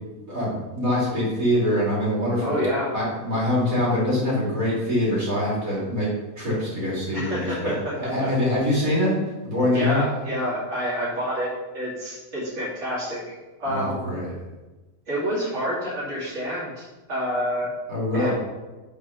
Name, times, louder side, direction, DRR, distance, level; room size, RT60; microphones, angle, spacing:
voice 1, 0.2-2.5 2.9-6.1 6.4-9.2 9.4-10.0 13.6-14.3 17.9-18.3, left 1 dB, 75° right, -6 dB, 3.5 m, -24 dB
voice 2, 2.4-2.9 7.1-7.8 8.2-8.3 9.7-13.2 13.6-14.0 15.1-17.7 18.1-18.3, equal, 55° right, -8 dB, 3.0 m, -28 dB
10.5 x 4.3 x 5.7 m, 1.2 s
omnidirectional pair, 1.5 m